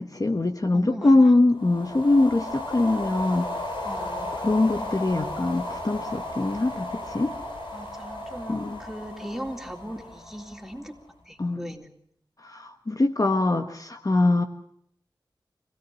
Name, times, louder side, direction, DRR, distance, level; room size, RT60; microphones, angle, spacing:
voice 1, 0.0-3.5 4.4-6.9 7.1-7.3 8.5-8.8 11.4-11.7 12.4-14.4, left 2 dB, 45° left, 6 dB, 1.4 m, -22 dB
voice 2, 0.7-1.3 3.8-4.4 4.8-4.9 7.7-10.9 11.3-11.9, equal, 5° right, 3 dB, 3.6 m, -38 dB
sound 1, 1.5-11.0, left 1 dB, 80° left, 6.7 m, -35 dB
26.5 x 17.0 x 7.7 m, 0.70 s
wide cardioid pair, 50°, 8 cm